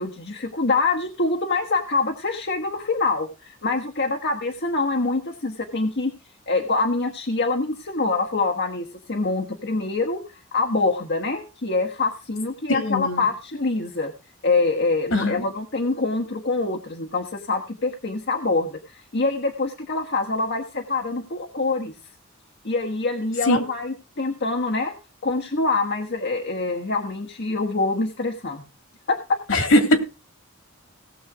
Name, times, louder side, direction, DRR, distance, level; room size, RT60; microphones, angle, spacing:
voice 1, 0.0-6.1 6.5-14.1 14.4-21.9 22.6-25.0 25.2-28.6 29.1-29.6, left 3 dB, 55° left, 3 dB, 1.4 m, -25 dB
voice 2, 12.7-13.3 15.1-15.4 23.5-23.6 29.5-30.0, left 1 dB, 70° left, 7 dB, 3.0 m, -20 dB
17.5 x 7.4 x 4.9 m, 0.30 s
head